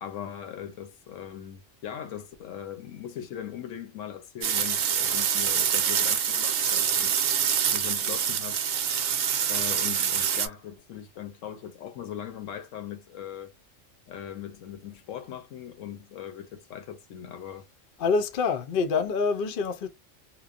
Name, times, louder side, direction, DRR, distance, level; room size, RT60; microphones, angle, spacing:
voice 1, 0.0-7.1 7.7-8.6 9.5-13.5 14.1-17.6, left 9 dB, 80° left, 1.0 m, -40 dB
sound 1, 4.4-10.5, right 8 dB, 65° right, 0.9 m, -26 dB
voice 2, 18.0-19.9, left 5 dB, 55° left, 0.6 m, -26 dB
3.0 x 2.0 x 2.4 m
omnidirectional pair, 1.3 m